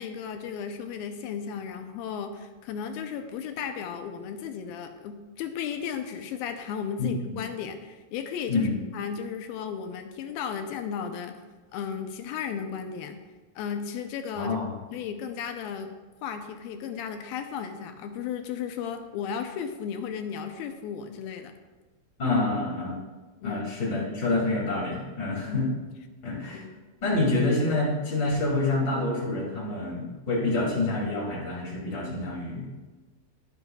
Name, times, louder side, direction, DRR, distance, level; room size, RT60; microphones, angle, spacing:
voice 1, 0.0-11.4 11.7-13.2 13.6-14.6 14.9-15.9 16.2-21.5 23.4-23.6 25.5-25.6 26.5-26.7, left 7 dB, 80° left, 6 dB, 2.3 m, -35 dB
voice 2, 7.0-7.4 8.5-8.8 14.4-14.7 22.2-23.0 23.4-25.7 26.2-26.6 27.0-32.7, left 2 dB, 30° left, -3 dB, 2.5 m, -27 dB
21.0 x 7.2 x 2.4 m, 1.3 s
omnidirectional pair, 4.7 m